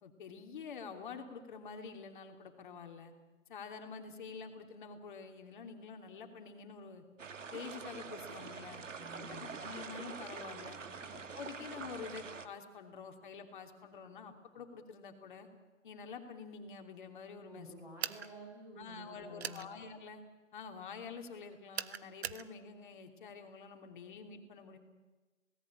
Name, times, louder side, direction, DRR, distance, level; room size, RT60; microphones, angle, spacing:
voice 1, 0.0-3.1 3.5-7.0 7.5-8.8 9.3-10.8 11.1-15.5 15.8-17.7 18.8-20.2 20.5-24.8, left 5 dB, 40° left, 5 dB, 3.0 m, -48 dB
sound 1, 7.2-12.5, right 5 dB, 70° right, 1.9 m, -45 dB
voice 2, 8.9-9.5 10.8-11.1 17.4-19.6, right 1 dB, 5° right, -2 dB, 7.6 m, -51 dB
sound 2, 18.0-18.3 19.4-19.6 21.7-22.4, right 7 dB, 55° right, 1.1 m, -39 dB
28.0 x 18.5 x 8.7 m, 1.2 s
hypercardioid pair, 155°, 39 cm